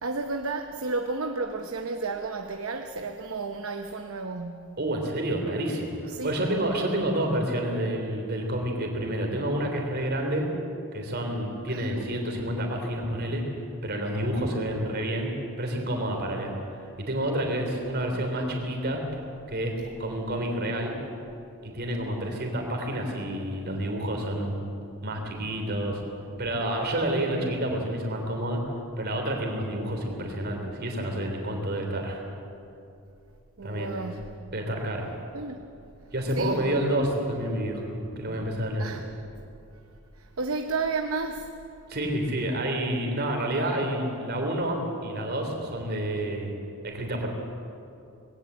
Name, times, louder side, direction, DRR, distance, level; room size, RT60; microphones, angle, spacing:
voice 1, 0.0-4.8 6.1-6.3 11.7-12.0 18.1-18.2 27.4-27.6 33.6-34.2 35.3-35.6 36.4-36.6 38.8-39.0 40.2-41.5, right 3 dB, 65° right, 5 dB, 0.9 m, -32 dB
voice 2, 4.8-10.5 10.9-13.4 13.8-19.0 19.5-19.7 20.0-20.9 21.6-24.7 25.0-26.0 26.4-28.6 29.0-32.3 33.6-34.1 34.5-35.1 36.1-38.9 41.9-46.5 46.8-47.3, right 1 dB, 45° right, 2 dB, 3.5 m, -29 dB
20.0 x 17.5 x 8.1 m, 2.6 s
head